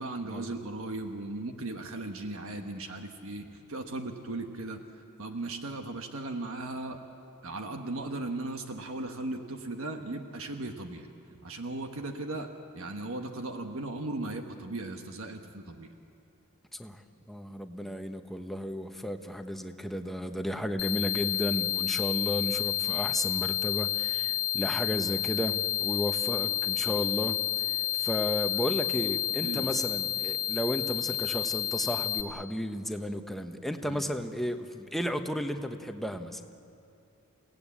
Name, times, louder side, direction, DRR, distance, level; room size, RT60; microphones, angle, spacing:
voice 1, 0.0-7.0 7.4-11.1 11.4-12.5 12.7-15.9 29.4-29.7 33.8-34.1, right 2 dB, 65° right, 4 dB, 1.4 m, -37 dB
voice 2, 17.3-27.4 28.0-36.4, equal, ahead, 6 dB, 1.0 m, -33 dB
sound 1, 20.8-32.2, left 13 dB, 75° left, 0.9 m, -30 dB
29.5 x 17.5 x 8.6 m, 2.6 s
head